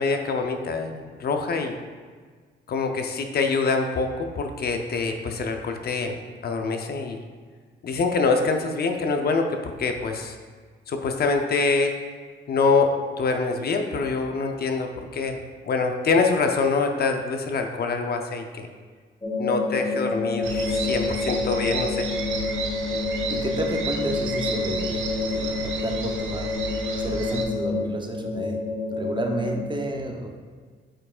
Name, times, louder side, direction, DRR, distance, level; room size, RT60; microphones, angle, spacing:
voice 1, 0.0-1.8 2.7-6.1 6.4-7.2 7.8-10.4 10.9-12.0 12.5-15.4 15.6-18.7 19.4-22.1, left 4 dB, 55° left, 4 dB, 0.6 m, -25 dB
sound 1, 19.2-29.6, left 3 dB, 20° left, 1.3 m, -28 dB
sound 2, 20.4-27.4, right 4 dB, 80° right, 0.7 m, -32 dB
voice 2, 23.3-26.5 27.0-28.6 28.9-30.3, right 2 dB, 25° right, 2 dB, 0.8 m, -31 dB
8.7 x 4.6 x 2.4 m, 1.6 s
cardioid pair, 90°, 20 cm